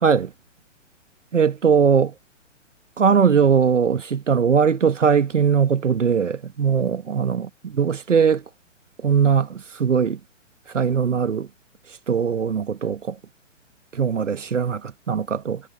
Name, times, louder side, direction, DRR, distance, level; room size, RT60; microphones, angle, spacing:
voice 1, 1.3-2.1 3.0-8.4 9.0-10.2 10.7-11.5 12.1-13.2 13.9-15.6, right 6 dB, 70° right, 1.7 m, -20 dB
figure-of-eight pair, 120°, 38 cm